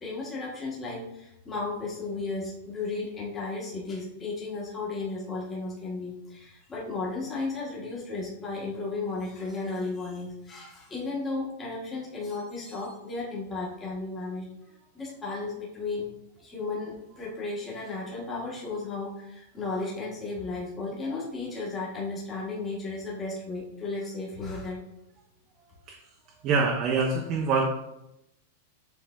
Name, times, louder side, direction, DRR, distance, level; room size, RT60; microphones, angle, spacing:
voice 1, 0.0-14.5 14.9-16.1 16.4-24.8, left 3 dB, 15° left, -5 dB, 1.0 m, -34 dB
voice 2, 26.4-27.7, right 4 dB, 30° right, 0 dB, 0.5 m, -25 dB
7.2 x 3.3 x 2.2 m, 0.86 s
supercardioid pair, 155°, 0 cm